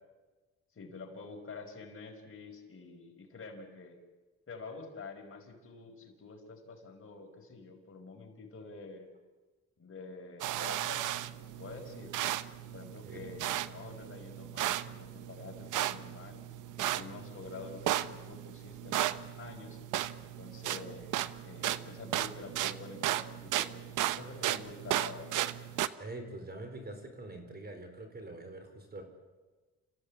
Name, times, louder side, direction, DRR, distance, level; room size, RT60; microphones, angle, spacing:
voice 1, 0.7-4.0 4.5-9.1 9.8-12.2 12.7-16.4 16.8-19.8 20.4-21.2 21.4-25.4, left 3 dB, 45° left, 2 dB, 5.0 m, -48 dB
sound 1, 10.4-25.9, right 13 dB, 85° right, 0.9 m, -35 dB
voice 2, 13.0-13.4 26.0-29.0, right 2 dB, 30° right, 6 dB, 4.6 m, -44 dB
29.0 x 15.5 x 8.6 m, 1.3 s
cardioid pair, 90°, 30 cm